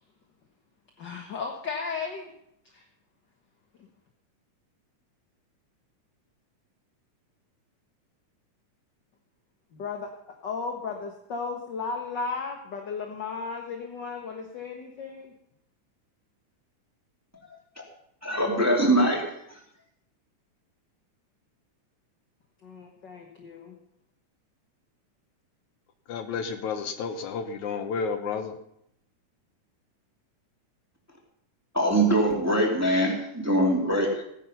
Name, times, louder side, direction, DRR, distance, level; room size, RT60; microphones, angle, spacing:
voice 1, 1.0-2.3 2.7-2.8 9.7-15.3 22.6-23.7, left 4 dB, 50° left, 2 dB, 1.5 m, -35 dB
voice 2, 18.2-19.2 31.7-34.1, right 1 dB, 5° right, 0 dB, 2.1 m, -22 dB
voice 3, 26.1-28.5, left 5 dB, 70° left, 8 dB, 2.3 m, -31 dB
17.0 x 10.0 x 5.6 m, 0.74 s
omnidirectional pair, 3.6 m